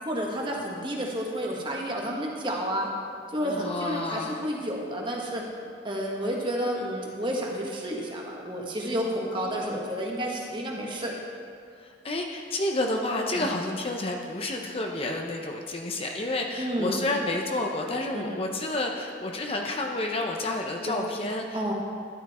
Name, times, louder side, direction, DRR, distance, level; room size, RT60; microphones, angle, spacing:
voice 1, 0.0-2.9 3.3-5.4 5.8-11.1 13.3-13.5 16.6-17.0 18.1-18.2 20.9-21.0 21.5-21.7, equal, 25° right, -1 dB, 1.7 m, -30 dB
voice 2, 3.4-4.4 9.3-9.8 11.8-21.7, left 2 dB, 30° left, 1 dB, 0.8 m, -30 dB
13.0 x 11.0 x 4.3 m, 2.3 s
head